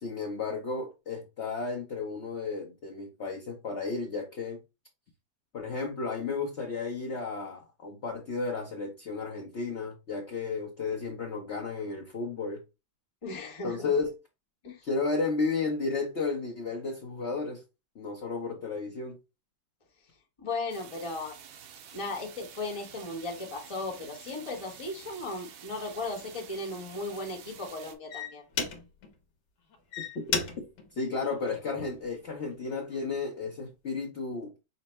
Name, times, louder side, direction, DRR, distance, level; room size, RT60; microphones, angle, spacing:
voice 1, 0.0-4.6 5.5-12.6 13.6-14.1 14.8-17.6 17.9-19.2 30.0-30.2 30.6-30.7 31.0-34.5, left 4 dB, 55° left, 0.8 m, -33 dB
voice 2, 13.2-13.9 14.6-14.8 20.4-21.4 21.9-28.4, left 2 dB, 25° left, 0.8 m, -36 dB
sound 1, 20.7-27.9, right 8 dB, 85° right, 1.5 m, -49 dB
sound 2, 25.9-26.1 26.7-27.0 27.7-27.8 28.1-29.1 29.7-32.1 32.6-33.0, left 6 dB, 70° left, 1.5 m, -35 dB
5.6 x 2.1 x 4.1 m
omnidirectional pair, 2.1 m